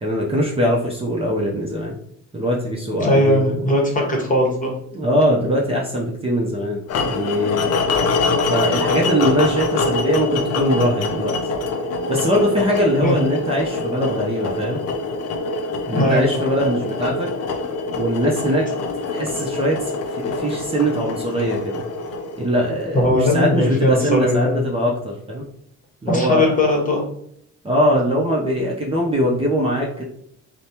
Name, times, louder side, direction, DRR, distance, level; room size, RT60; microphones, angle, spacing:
voice 1, 0.0-1.9 2.3-3.7 4.9-6.8 7.1-7.8 8.5-11.4 12.1-14.8 15.9-17.3 18.0-18.7 19.1-19.8 20.1-21.8 22.4-25.4 26.0-26.5 27.6-30.0, equal, 20° right, -4 dB, 0.6 m, -21 dB
voice 2, 3.0-4.7 13.0-13.2 15.9-16.3 22.9-24.6 26.1-27.0, left 1 dB, 25° left, -1 dB, 1.0 m, -18 dB
sound 1, 6.9-23.0, left 3 dB, 55° left, 0.5 m, -25 dB
3.2 x 2.1 x 2.8 m, 0.70 s
cardioid pair, 90°, 30 cm